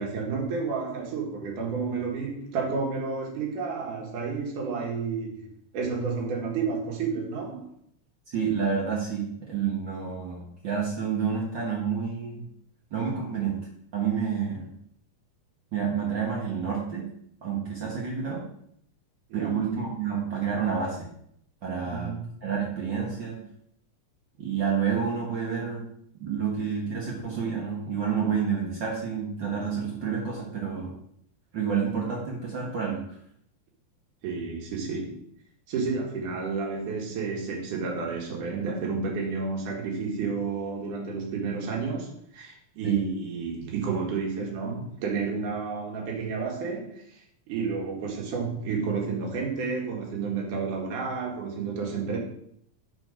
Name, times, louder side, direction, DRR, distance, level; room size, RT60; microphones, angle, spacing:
voice 1, 0.0-7.6 19.3-19.6 21.8-22.2 34.2-35.2 35.7-47.2 47.5-52.2, right 5 dB, 80° right, -1 dB, 3.0 m, -31 dB
voice 2, 8.3-12.5 12.9-13.6 13.9-14.7 15.7-17.1 17.4-18.4 19.3-21.1 21.6-22.1 22.4-23.4 24.4-25.8 26.2-31.0 31.5-33.0 42.8-43.0, right 6 dB, 55° right, -3 dB, 1.3 m, -29 dB
6.9 x 4.5 x 5.0 m, 0.68 s
omnidirectional pair, 3.6 m